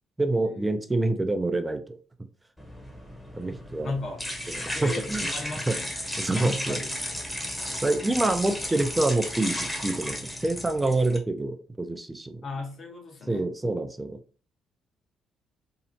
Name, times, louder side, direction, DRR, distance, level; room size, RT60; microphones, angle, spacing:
voice 1, 0.2-2.0 3.4-3.9 4.5-5.3 5.7-5.8 6.2-6.8 7.8-12.4 13.3-14.2, right 2 dB, 15° right, 8 dB, 0.4 m, -27 dB
sound 1, 2.6-11.2, equal, 10° left, 0.8 m, -34 dB
voice 2, 3.8-4.2 4.7-5.9 6.2-6.9 12.4-13.5, left 3 dB, 55° left, 2 dB, 0.8 m, -35 dB
2.7 x 2.0 x 2.7 m, 0.38 s
supercardioid pair, 65°, 0 cm